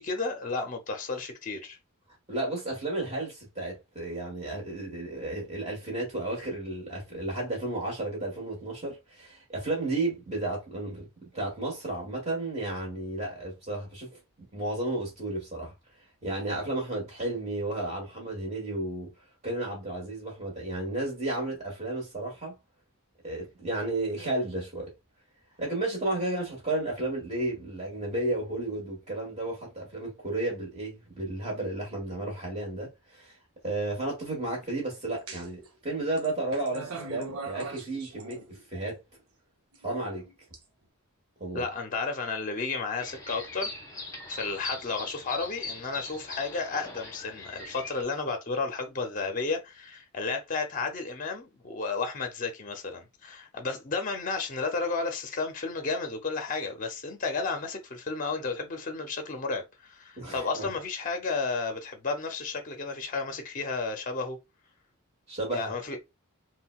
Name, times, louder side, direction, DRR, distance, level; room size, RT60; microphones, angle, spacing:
voice 1, 0.0-1.8 41.5-64.4 65.5-66.0, left 4 dB, 35° left, 0.5 m, -32 dB
voice 2, 2.3-11.1 11.3-15.7 16.2-19.1 19.4-22.5 23.2-24.9 25.6-33.3 33.6-38.4 38.7-39.0 39.8-40.2 41.4-41.6 60.2-60.7 65.3-65.7, right 2 dB, 30° right, 1.3 m, -33 dB
sound 1, 35.3-35.7 36.2-38.9 39.7-40.6, right 3 dB, 75° right, 0.7 m, -41 dB
sound 2, 43.0-48.0, left 3 dB, 15° left, 0.9 m, -40 dB
3.7 x 2.2 x 2.2 m
head